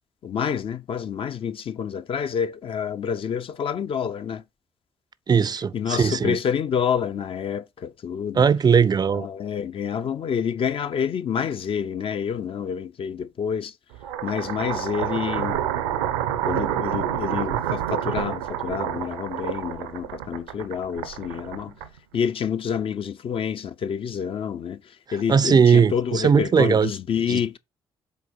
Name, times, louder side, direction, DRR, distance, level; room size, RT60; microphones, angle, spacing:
voice 1, 0.2-4.4 5.7-8.5 9.1-13.7 14.2-15.6 16.4-21.7 22.1-24.8 25.1-27.6, left 7 dB, 50° left, 0.7 m, -28 dB
voice 2, 5.3-6.4 8.3-9.3 25.3-26.9 27.3-27.4, right 6 dB, 35° right, 0.5 m, -19 dB
sound 1, 13.9-22.2, right 10 dB, 80° right, 0.7 m, -28 dB
7.1 x 4.1 x 4.3 m
figure-of-eight pair, 45°, 12 cm